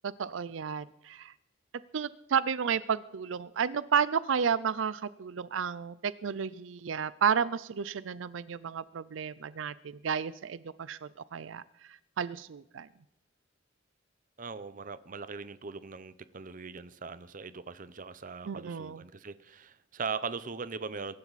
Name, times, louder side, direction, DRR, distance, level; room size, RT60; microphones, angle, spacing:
voice 1, 0.0-1.3 1.9-11.6 11.9-12.9 18.5-19.0, right 7 dB, 85° right, 17 dB, 0.5 m, -32 dB
voice 2, 14.4-21.1, right 5 dB, 45° right, 15 dB, 0.7 m, -40 dB
23.0 x 11.5 x 4.1 m, 0.81 s
head